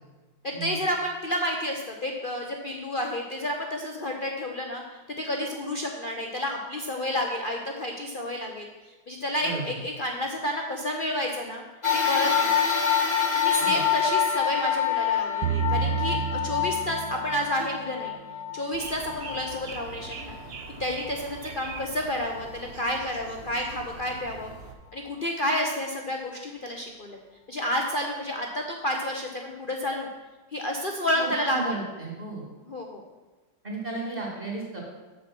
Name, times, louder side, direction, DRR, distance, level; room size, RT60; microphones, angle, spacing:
voice 1, 0.4-11.6 12.0-12.6 13.3-18.2 18.5-20.4 20.8-24.5 24.9-27.2 27.5-30.1 30.5-31.8 32.7-33.0, left 1 dB, 50° left, 1 dB, 0.6 m, -30 dB
sound 1, 11.8-20.4 21.0-21.1 22.3-22.4, left 8 dB, 20° left, 0.9 m, -26 dB
sound 2, 15.4-17.8, right 6 dB, 70° right, 1.0 m, -29 dB
sound 3, 18.7-24.7, right 4 dB, 45° right, 0.8 m, -42 dB
voice 2, 31.2-32.4 33.6-34.8, right 3 dB, 30° right, -3 dB, 2.6 m, -34 dB
8.1 x 7.3 x 6.0 m, 1.2 s
omnidirectional pair, 2.0 m